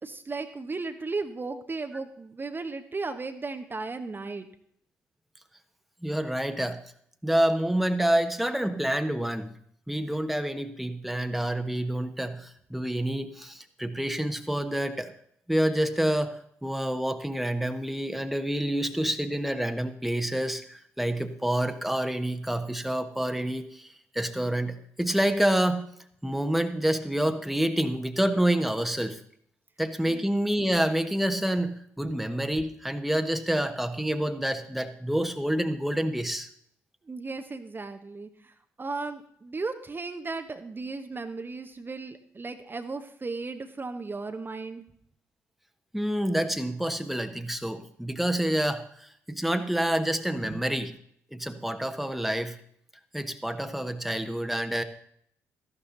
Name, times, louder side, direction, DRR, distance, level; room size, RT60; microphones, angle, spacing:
voice 1, 0.0-4.5 30.1-30.2 37.0-44.8 50.4-50.6, right 3 dB, 30° right, 7 dB, 1.1 m, -35 dB
voice 2, 6.0-6.8 7.2-9.5 9.9-15.1 15.5-25.9 26.2-29.2 29.8-36.5 45.9-50.9 51.3-52.6 53.1-54.8, right 1 dB, ahead, 7 dB, 1.3 m, -28 dB
14.0 x 12.0 x 4.0 m, 0.67 s
figure-of-eight pair, 40°, 7 cm